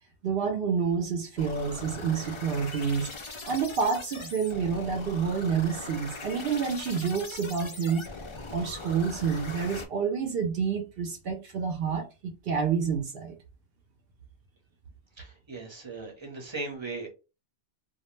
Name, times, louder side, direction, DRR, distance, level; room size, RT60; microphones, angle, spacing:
voice 1, 0.2-3.1 3.5-8.1 8.5-13.4, right 6 dB, 65° right, 0.7 m, -28 dB
sound 1, 1.4-9.8, left 3 dB, 55° left, 0.3 m, -41 dB
voice 2, 15.2-17.1, right 3 dB, 30° right, 0.7 m, -38 dB
2.3 x 2.0 x 3.1 m
omnidirectional pair, 1.1 m